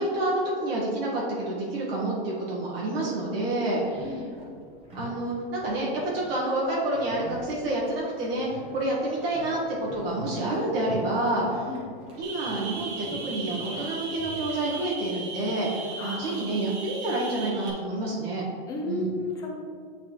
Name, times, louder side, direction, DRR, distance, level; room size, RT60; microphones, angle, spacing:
voice 1, 0.0-4.2 4.9-11.7 12.2-18.5 18.9-19.1, right 1 dB, 80° right, -5 dB, 1.5 m, -28 dB
sound 1, 3.7-14.8, equal, 20° right, 1.0 m, -45 dB
sound 2, 12.2-17.7, right 3 dB, 45° right, 1.3 m, -37 dB
voice 2, 16.0-16.4 18.7-19.6, left 2 dB, 10° left, 0 dB, 0.4 m, -33 dB
8.8 x 4.2 x 3.0 m, 2.2 s
supercardioid pair, 165°, 29 cm